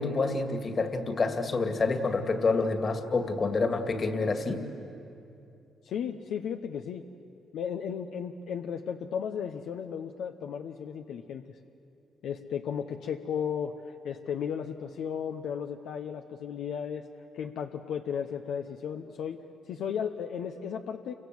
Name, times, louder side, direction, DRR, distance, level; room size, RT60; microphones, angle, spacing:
voice 1, 0.0-4.6, left 3 dB, 40° left, 7 dB, 2.3 m, -28 dB
voice 2, 5.8-7.0 7.5-11.4 12.2-17.1 17.3-19.4 19.7-21.1, left 7 dB, 75° left, 5 dB, 0.9 m, -34 dB
28.5 x 24.5 x 7.8 m, 2.7 s
cardioid pair, 90°, 0 cm